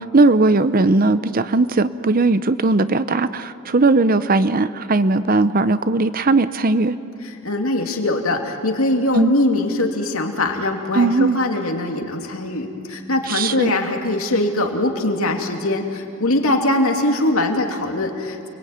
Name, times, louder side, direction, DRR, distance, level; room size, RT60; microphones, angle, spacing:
voice 1, 0.0-7.0 9.1-9.3 10.9-11.4 13.3-13.7, right 3 dB, 40° right, 14 dB, 0.7 m, -18 dB
voice 2, 7.2-18.5, left 1 dB, 70° left, 3 dB, 2.8 m, -22 dB
29.5 x 21.5 x 9.4 m, 2.5 s
head